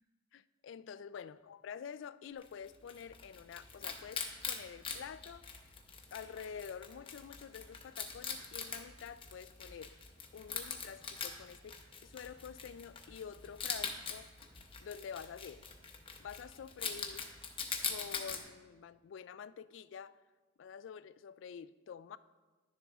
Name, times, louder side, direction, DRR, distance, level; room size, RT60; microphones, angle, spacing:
voice 1, 0.3-5.5 6.1-9.9 10.3-14.3 14.8-15.6 16.2-17.3 17.8-20.2 20.6-22.2, left 7 dB, 80° left, 16 dB, 0.3 m, -48 dB
Wild animals, 2.4-18.4, left 6 dB, 30° left, 0.9 m, -43 dB
11.0 x 7.0 x 3.5 m, 1.3 s
head